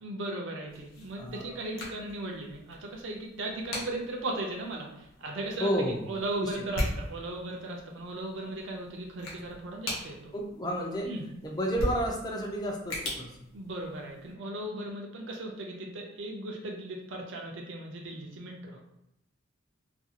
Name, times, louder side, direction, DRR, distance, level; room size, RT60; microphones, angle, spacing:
voice 1, 0.0-10.3 11.0-11.3 13.5-18.9, right 2 dB, 60° right, 0 dB, 0.5 m, -37 dB
sound 1, 0.7-14.3, left 1 dB, 70° left, 0.9 m, -40 dB
voice 2, 1.2-1.6 5.6-6.0 6.4-6.5 10.3-11.1 11.4-13.3, equal, 20° left, 0 dB, 0.5 m, -31 dB
2.5 x 2.3 x 2.8 m, 0.83 s
head